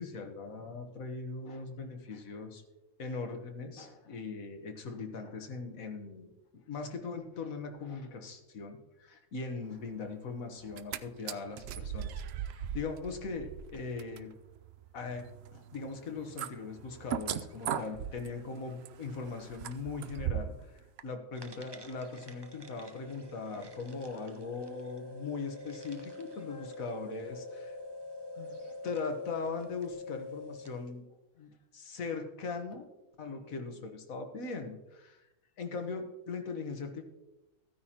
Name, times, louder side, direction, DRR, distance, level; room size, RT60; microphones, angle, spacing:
voice 1, 0.0-2.6 3.0-14.3 14.9-27.8 28.3-31.0 31.4-32.9 33.2-35.3 35.6-37.0, left 4 dB, 60° left, 5 dB, 1.6 m, -40 dB
sound 1, 10.6-11.0 11.3-20.6 21.0-21.1, right 9 dB, 90° right, 0.5 m, -39 dB
sound 2, 21.3-30.9, left 2 dB, 30° right, 0.5 m, -46 dB
14.5 x 9.6 x 2.9 m, 1.0 s
omnidirectional pair, 1.6 m